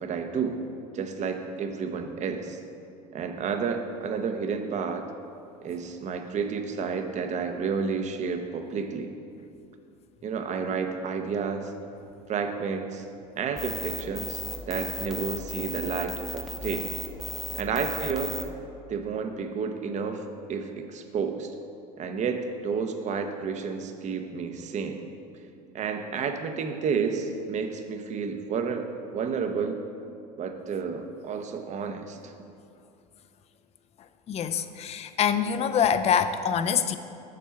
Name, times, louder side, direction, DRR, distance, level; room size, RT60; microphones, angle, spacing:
voice 1, 0.0-0.6 0.9-2.6 3.1-5.1 5.6-9.1 10.2-11.7 12.3-13.0 13.4-14.4 14.7-16.9 17.5-18.4 18.9-21.5 22.0-25.0 25.7-29.8 30.4-32.2, right 5 dB, 35° right, 7 dB, 0.7 m, -31 dB
sound 1, 13.6-18.4, equal, ahead, 0.7 m, -35 dB
voice 2, 34.3-37.0, left 7 dB, 30° left, 10 dB, 0.5 m, -25 dB
7.4 x 4.5 x 5.7 m, 2.5 s
hypercardioid pair, 85°, 20 cm